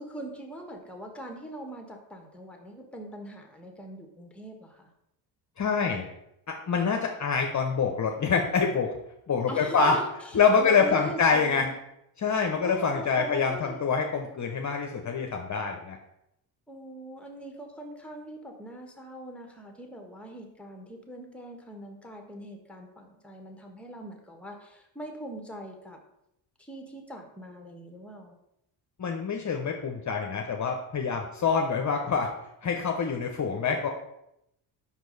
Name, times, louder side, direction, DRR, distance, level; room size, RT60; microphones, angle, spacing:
voice 1, 0.0-4.9 9.5-11.7 12.6-13.8 16.7-26.0 26.6-28.4, equal, ahead, 2 dB, 1.3 m, -42 dB
voice 2, 5.6-6.1 6.5-9.0 9.3-10.0 10.3-11.7 12.2-16.0 29.0-32.3 32.6-33.9, left 5 dB, 40° left, 3 dB, 0.8 m, -26 dB
5.5 x 4.6 x 4.0 m, 0.81 s
supercardioid pair, 65°, 47 cm